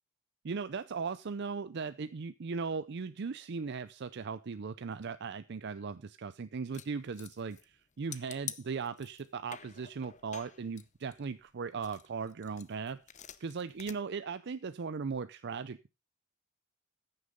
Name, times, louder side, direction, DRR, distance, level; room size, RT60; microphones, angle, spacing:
voice 1, 0.4-13.0 13.4-16.0, right 5 dB, 55° right, 0.5 m, -38 dB
sound 1, 6.7-7.8 8.1-9.3 9.5-11.5 11.8-13.9, left 10 dB, 35° left, 0.8 m, -47 dB
14.5 x 6.7 x 5.3 m
head